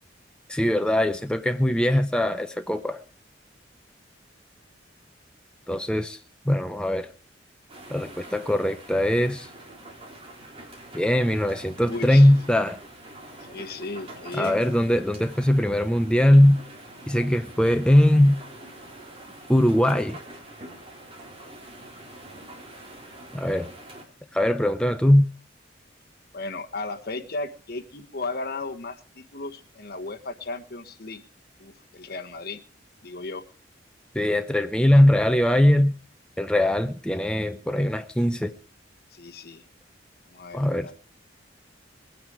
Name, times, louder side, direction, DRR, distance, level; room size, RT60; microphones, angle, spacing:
voice 1, 0.5-3.0 5.7-6.2 6.5-7.1 7.9-9.5 10.9-12.8 14.3-16.6 17.1-18.4 19.5-20.2 23.3-23.7 24.3-25.3 34.1-35.9 36.4-38.5 40.5-40.9, left 1 dB, 5° left, 0.7 m, -20 dB
sound 1, 7.7-24.0, right 1 dB, 30° right, 3.5 m, -45 dB
voice 2, 11.8-12.3 13.4-14.6 26.3-31.2 31.6-32.6 33.0-33.4 39.1-39.6 40.3-40.9, left 3 dB, 55° left, 1.4 m, -35 dB
21.5 x 9.3 x 4.9 m
head